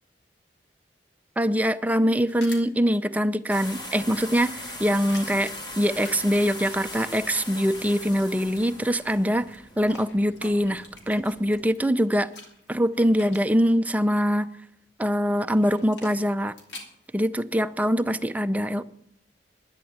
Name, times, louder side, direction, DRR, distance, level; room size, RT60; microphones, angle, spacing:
voice 1, 1.4-12.3 12.7-14.5 15.0-16.5 17.1-18.8, equal, 10° right, 0.5 m, -23 dB
sound 1, 1.9-3.0 3.4-7.0 7.3-14.2 15.5-17.9, left 2 dB, 75° left, 3.0 m, -47 dB
sound 2, 3.5-11.6, left 1 dB, 25° left, 2.1 m, -40 dB
11.5 x 9.9 x 7.3 m
head